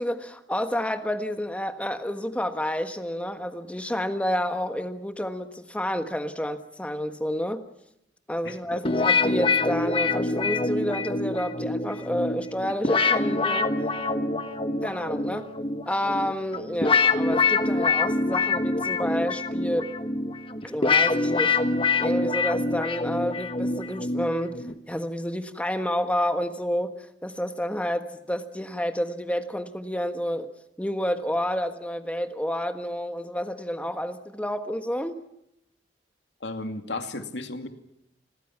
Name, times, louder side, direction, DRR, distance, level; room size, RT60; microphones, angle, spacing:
voice 1, 0.0-7.6 8.3-13.7 14.8-15.5 15.8-19.9 20.6-21.6 22.0-26.9 27.2-30.5 30.8-35.2, equal, 10° left, 8 dB, 1.4 m, -29 dB
voice 2, 8.4-8.8 36.4-37.7, left 2 dB, 85° left, 6 dB, 2.4 m, -34 dB
sound 1, 8.8-24.8, left 3 dB, 30° left, 1.4 m, -25 dB
29.5 x 22.0 x 5.9 m, 0.82 s
head